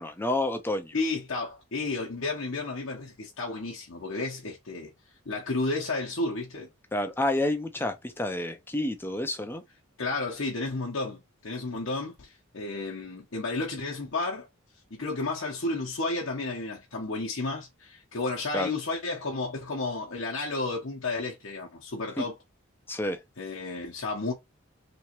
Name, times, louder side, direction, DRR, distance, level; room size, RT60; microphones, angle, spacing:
voice 1, 0.0-0.9 6.9-9.6 18.5-18.7 22.2-22.3 22.9-23.2, left 1 dB, 10° left, 0.5 m, -29 dB
voice 2, 0.9-4.9 5.3-6.7 10.0-14.5 14.9-22.4 23.4-24.3, left 3 dB, 60° left, 0.9 m, -32 dB
3.4 x 3.0 x 3.0 m
head